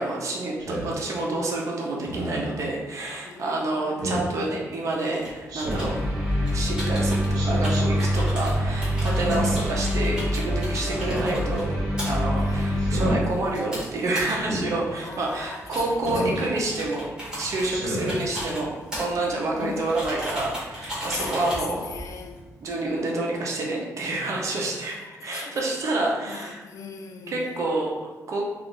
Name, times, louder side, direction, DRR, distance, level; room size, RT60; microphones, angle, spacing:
voice 1, 0.0-11.7 12.0-17.1 17.4-21.8 22.6-26.6 27.3-27.9 28.3-28.4, right 2 dB, 55° right, -1 dB, 0.7 m, -28 dB
Speech synthesizer, 0.6-0.9 2.0-2.6 4.0-4.3 5.5-6.0 7.3-7.8 9.1-9.7 10.9-11.5 12.8-13.2 14.4-14.7 16.0-16.4 17.7-18.2, right 1 dB, 90° right, 0.8 m, -31 dB
voice 2, 3.2-4.1 8.3-9.1 12.4-12.7 15.0-15.8 16.1-16.5 17.8-18.7 19.6-19.9 21.1-22.4 24.6-24.7 25.1-25.6 26.3-27.6, left 5 dB, 60° left, 4 dB, 0.4 m, -40 dB
sound 1, 5.2-22.7, equal, 10° right, 1.2 m, -38 dB
sound 2, 5.6-13.2, equal, 5° left, 0.8 m, -25 dB
2.5 x 2.4 x 3.7 m, 1.2 s
cardioid pair, 130°, 6 cm